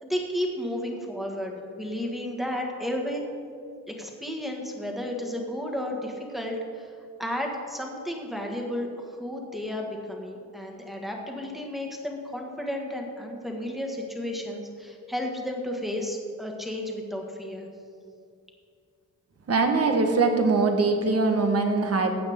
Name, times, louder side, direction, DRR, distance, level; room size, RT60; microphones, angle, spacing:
voice 1, 0.0-3.2 3.9-6.9 7.2-17.7, left 1 dB, ahead, 0 dB, 1.7 m, -33 dB
voice 2, 19.5-22.1, right 3 dB, 50° right, 4 dB, 1.4 m, -22 dB
15.0 x 8.8 x 3.6 m, 2.4 s
cardioid pair, 110°, 33 cm